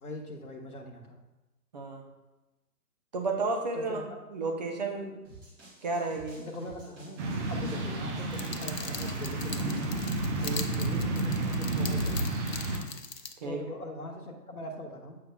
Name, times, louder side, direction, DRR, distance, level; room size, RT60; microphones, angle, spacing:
voice 1, 0.0-1.2 3.7-4.0 6.4-7.2 7.5-10.0 10.7-12.4 13.4-15.2, left 1 dB, 65° left, 2 dB, 1.2 m, -41 dB
voice 2, 1.7-2.0 3.1-4.0 4.3-5.2 5.8-6.4 10.4-10.7 13.4-13.6, right 3 dB, 25° right, 2 dB, 0.7 m, -32 dB
sound 1, 5.2-10.7, right 2 dB, 10° right, 1.4 m, -52 dB
sound 2, 7.2-12.8, right 2 dB, 45° right, 1.2 m, -31 dB
sound 3, 8.3-13.3, left 5 dB, 80° left, 0.8 m, -41 dB
7.9 x 5.7 x 2.3 m, 1.1 s
figure-of-eight pair, 140°, 47 cm